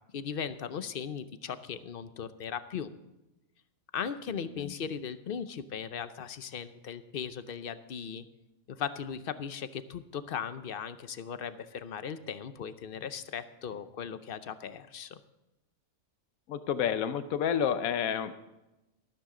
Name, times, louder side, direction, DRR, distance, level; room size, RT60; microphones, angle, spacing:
voice 1, 0.1-2.9 3.9-8.2 8.7-15.2, left 7 dB, 50° left, 12 dB, 0.7 m, -38 dB
voice 2, 16.5-18.4, left 8 dB, 80° left, 11 dB, 1.2 m, -30 dB
13.5 x 13.0 x 3.8 m, 0.99 s
omnidirectional pair, 1.5 m